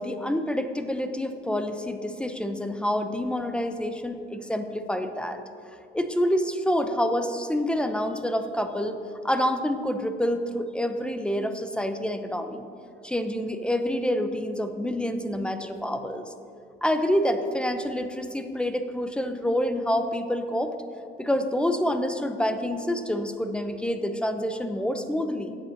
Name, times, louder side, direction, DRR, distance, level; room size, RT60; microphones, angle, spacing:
voice 1, 0.0-5.4 5.9-9.0 9.2-12.7 13.0-16.3 16.8-20.7 21.2-25.5, equal, 5° left, 8 dB, 0.6 m, -27 dB
7.9 x 7.4 x 6.3 m, 2.6 s
cardioid pair, 110°, 17 cm